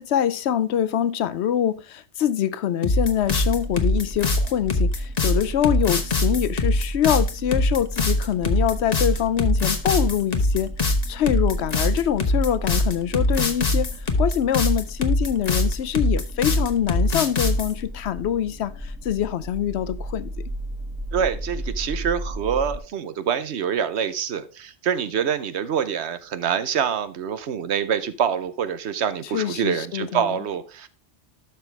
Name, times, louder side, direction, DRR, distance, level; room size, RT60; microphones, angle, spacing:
voice 1, 0.0-20.3 29.2-30.4, left 10 dB, 70° left, 0.8 m, -24 dB
sound 1, 2.8-17.7, left 2 dB, 35° left, 1.1 m, -22 dB
sound 2, 3.2-22.8, equal, 10° right, 1.6 m, -35 dB
voice 2, 21.1-30.9, right 8 dB, 70° right, 1.0 m, -26 dB
12.0 x 5.8 x 3.3 m
omnidirectional pair, 1.2 m